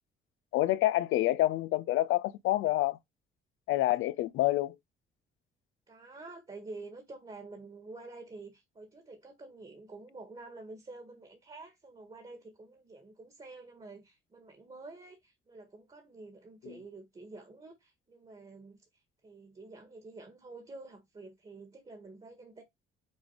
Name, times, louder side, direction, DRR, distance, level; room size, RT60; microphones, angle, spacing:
voice 1, 0.5-3.0 3.7-4.8 16.6-16.7, left 16 dB, 90° left, 0.5 m, -27 dB
voice 2, 5.9-18.8 19.2-22.6, right 3 dB, 30° right, 1.7 m, -49 dB
6.3 x 3.5 x 4.9 m
cardioid pair, 90°, 20 cm